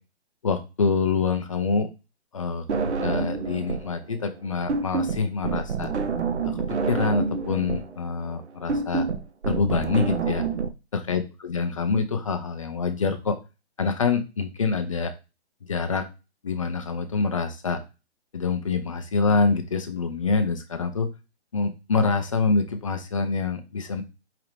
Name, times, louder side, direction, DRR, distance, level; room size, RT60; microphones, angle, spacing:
voice 1, 0.4-1.9 2.3-2.7 3.0-5.9 6.4-9.1 9.5-10.4 10.9-13.4 13.8-15.1 15.7-16.1 16.4-17.8 18.3-21.1 21.5-24.0, left 4 dB, 30° left, 7 dB, 0.4 m, -26 dB
sound 1, 2.7-4.0 4.2-10.7, right 5 dB, 80° right, 0.7 m, -27 dB
4.9 x 2.9 x 3.1 m, 0.28 s
hypercardioid pair, 150°, 34 cm